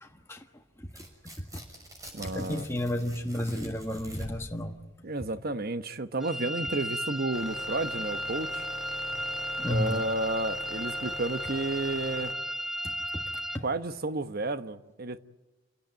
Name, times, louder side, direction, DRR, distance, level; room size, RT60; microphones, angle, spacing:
voice 1, 0.0-0.4 0.8-0.9 1.5-1.6 2.3-4.7 9.6-10.0 12.8-12.9 13.2-13.3, left 1 dB, 15° left, 1.5 m, -32 dB
Tearing, 0.8-4.6, right 1 dB, 20° right, 6.1 m, -44 dB
voice 2, 2.1-2.6 5.0-8.6 9.7-12.3 13.6-15.2, right 2 dB, 50° right, 1.1 m, -32 dB
sound 1, 6.2-13.6, equal, ahead, 0.7 m, -35 dB
sound 2, 7.3-12.3, left 1 dB, 50° left, 2.3 m, -43 dB
28.5 x 17.5 x 9.2 m
head